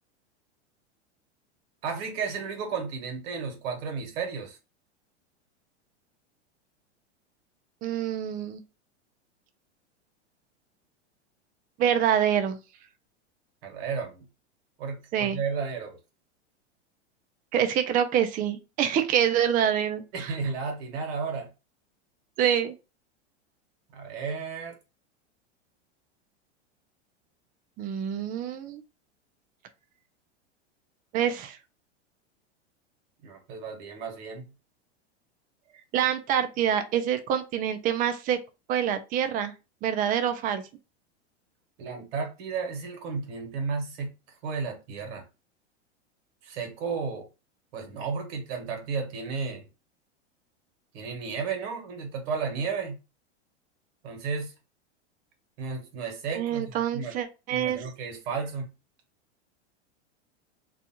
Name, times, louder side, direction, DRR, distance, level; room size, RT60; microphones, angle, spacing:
voice 1, 1.8-4.6 13.6-14.3 14.8-16.0 20.1-21.5 23.9-24.8 33.2-34.5 41.8-44.1 44.4-45.2 46.4-47.3 47.7-49.6 50.9-53.0 54.0-54.5 55.6-57.1 57.5-58.7, right 5 dB, 60° right, 1.2 m, -33 dB
voice 2, 7.8-8.6 11.8-12.6 15.1-15.4 17.5-20.3 22.4-22.7 27.8-28.8 31.1-31.6 35.9-38.4 38.7-39.5 39.8-40.6 56.3-57.8, right 9 dB, 25° right, 0.4 m, -26 dB
2.4 x 2.3 x 2.8 m
hypercardioid pair, 110°, 35 cm